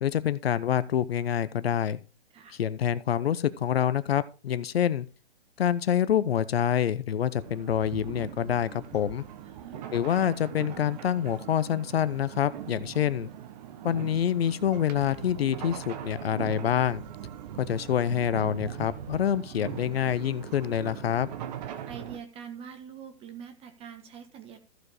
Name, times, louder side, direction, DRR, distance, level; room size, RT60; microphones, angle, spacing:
voice 1, 0.0-2.0 2.5-5.1 5.6-9.2 9.9-13.3 13.8-17.0 17.6-21.3, left 9 dB, 65° left, 0.8 m, -26 dB
sound 1, 7.4-22.2, right 10 dB, 40° right, 1.3 m, -40 dB
voice 2, 9.4-9.9 21.9-24.6, right 7 dB, 15° right, 1.4 m, -44 dB
14.5 x 4.9 x 4.8 m
hypercardioid pair, 140°, 33 cm